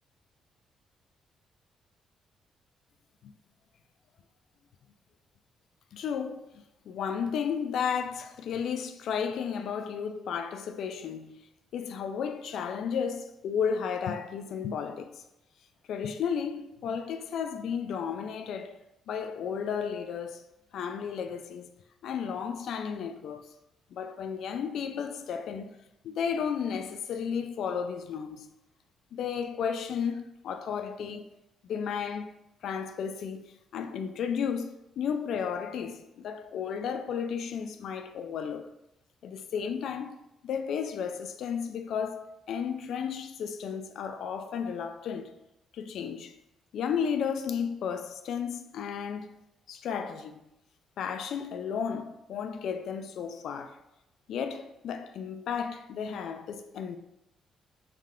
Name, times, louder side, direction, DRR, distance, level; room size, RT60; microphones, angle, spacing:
voice 1, 5.9-6.5 6.9-11.4 11.7-15.2 15.9-18.8 19.1-20.4 20.7-21.7 22.0-23.5 23.9-25.7 26.0-28.5 29.1-31.3 31.6-32.3 32.6-38.7 39.2-45.3 45.7-46.3 46.7-49.4 49.7-50.4 51.0-53.8 54.3-57.0, left 7 dB, 65° left, 0.3 m, -33 dB
3.5 x 3.2 x 3.6 m
cardioid pair, 150°, 0 cm